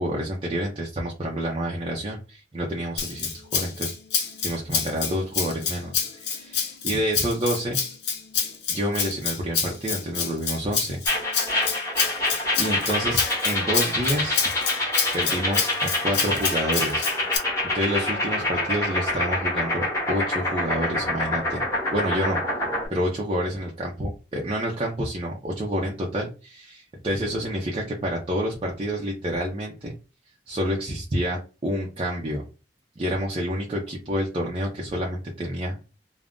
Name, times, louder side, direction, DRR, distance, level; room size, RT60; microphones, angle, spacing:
voice 1, 0.0-7.8 8.7-11.0 12.6-14.4 15.1-17.1 17.7-21.6 21.9-22.4 22.9-29.9 30.5-32.4 33.0-35.9, equal, 30° right, -2 dB, 0.5 m, -28 dB
Rattle (instrument), 3.0-17.4, left 6 dB, 85° left, 0.7 m, -28 dB
sound 1, 11.1-22.9, left 1 dB, 15° left, 1.1 m, -26 dB
2.5 x 2.1 x 3.5 m, 0.32 s
head